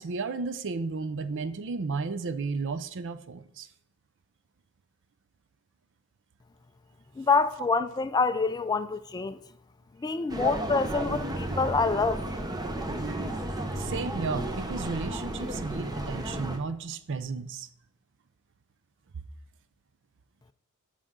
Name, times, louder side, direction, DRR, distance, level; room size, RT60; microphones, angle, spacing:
voice 1, 0.0-3.7 13.8-17.7, right 4 dB, 55° right, 0.5 m, -33 dB
voice 2, 7.2-9.4 10.0-12.2, left 4 dB, 20° left, 0.3 m, -26 dB
sound 1, 10.3-16.6, right 1 dB, 20° right, 0.8 m, -33 dB
13.0 x 5.0 x 3.7 m
head